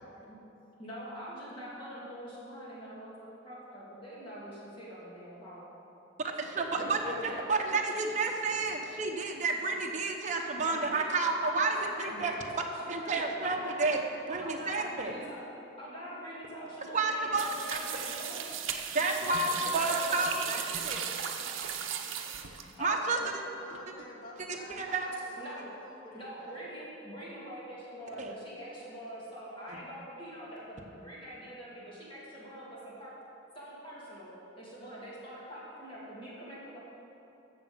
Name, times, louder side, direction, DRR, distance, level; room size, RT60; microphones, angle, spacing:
voice 1, 0.8-5.7 6.7-7.4 10.6-11.1 11.4-14.1 14.4-15.5 15.8-18.4 19.6-20.3 22.7-23.1 25.4-25.7 26.1-33.1 33.5-34.3 34.5-36.8, equal, 25° left, -8 dB, 2.8 m, -44 dB
voice 2, 6.4-12.3 12.9-14.0 14.3-15.2 16.9-17.5 18.9-21.1 22.8-23.2 24.5-25.1 28.2-28.3 29.7-29.8, right 3 dB, 40° right, 1 dB, 1.0 m, -30 dB
sound 1, 17.4-22.9, right 8 dB, 80° right, 0.8 m, -36 dB
voice 3, 23.2-26.6, left 1 dB, 45° left, -2 dB, 1.8 m, -49 dB
14.5 x 7.2 x 5.2 m, 2.9 s
head